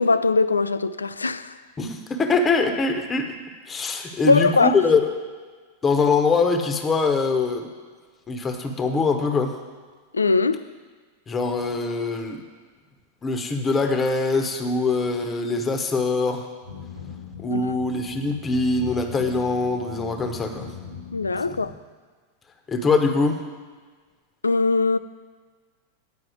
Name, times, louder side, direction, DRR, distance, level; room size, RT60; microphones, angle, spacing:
voice 1, 0.0-1.5 4.2-4.8 10.1-10.6 17.5-17.7 21.1-21.7 24.4-25.0, left 3 dB, 75° left, 0.3 m, -21 dB
voice 2, 1.8-3.4 3.7-5.1 5.8-7.7 8.3-9.6 11.3-12.4 13.2-16.5 17.4-20.7 21.5-21.6 22.7-23.4, left 4 dB, 20° left, 1.0 m, -23 dB
sound 1, 16.6-21.7, left 7 dB, 85° right, 1.3 m, -40 dB
9.1 x 5.7 x 7.8 m
figure-of-eight pair, 90°, 0 cm